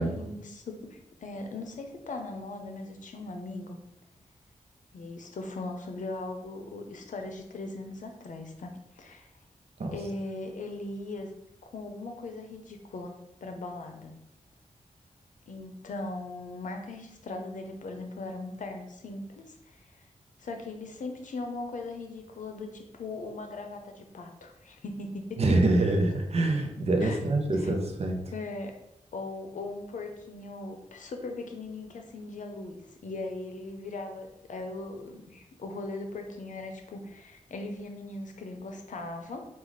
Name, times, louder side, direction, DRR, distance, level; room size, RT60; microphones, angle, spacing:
voice 1, 0.0-3.8 4.9-9.3 9.9-11.3 11.6-14.1 15.5-20.1 20.4-25.6 27.0-27.2 27.5-27.7 28.3-28.7 29.1-39.5, left 2 dB, 80° left, 4 dB, 0.6 m, -39 dB
voice 2, 25.4-28.2, right 2 dB, 50° right, 3 dB, 0.7 m, -25 dB
4.6 x 2.4 x 4.0 m, 0.84 s
wide cardioid pair, 135°, 13 cm